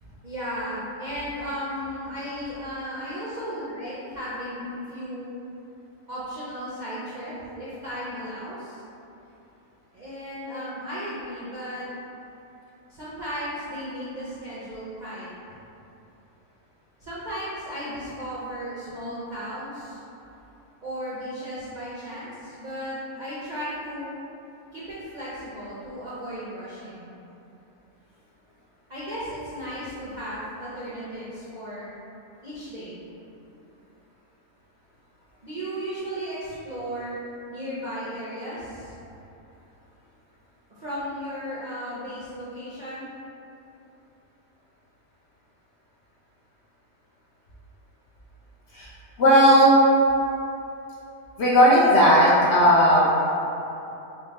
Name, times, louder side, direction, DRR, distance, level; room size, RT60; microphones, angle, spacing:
voice 1, 0.0-5.3 6.1-8.8 9.9-11.9 12.9-15.3 17.0-20.0 20.8-24.1 24.7-27.1 28.9-31.9 32.4-33.0 35.4-37.2 37.5-39.0 40.7-43.1, equal, 50° right, -10 dB, 0.5 m, -35 dB
voice 2, 49.2-49.8 51.4-53.1, equal, 60° left, -7 dB, 0.7 m, -16 dB
3.7 x 2.1 x 4.0 m, 2.9 s
omnidirectional pair, 1.5 m